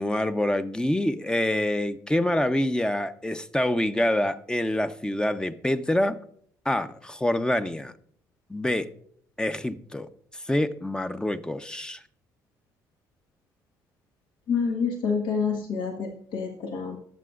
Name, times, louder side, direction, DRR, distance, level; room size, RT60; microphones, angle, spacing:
voice 1, 0.0-6.2 6.6-7.9 8.5-8.9 9.4-10.1 10.3-12.0, left 1 dB, 10° left, 0.8 m, -26 dB
voice 2, 14.5-17.0, left 5 dB, 65° left, 1.6 m, -28 dB
21.5 x 7.6 x 2.5 m
hypercardioid pair, 55°, 9 cm